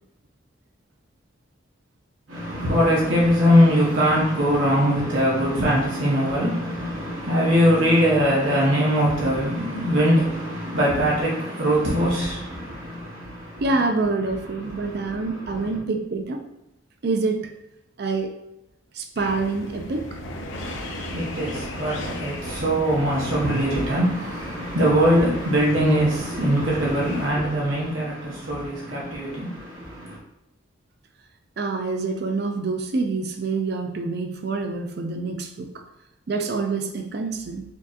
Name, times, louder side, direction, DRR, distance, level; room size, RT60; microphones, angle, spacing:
voice 1, 2.3-13.6 14.7-15.7 20.6-30.2, equal, 75° right, 1.0 m, -22 dB
voice 2, 13.6-16.4 17.0-17.5 18.0-18.4 18.9-20.2 31.6-35.8 36.3-37.6, right 3 dB, 55° right, 0.4 m, -26 dB
sound 1, 19.2-27.3, left 1 dB, 70° left, 0.5 m, -36 dB
4.4 x 2.8 x 2.5 m
head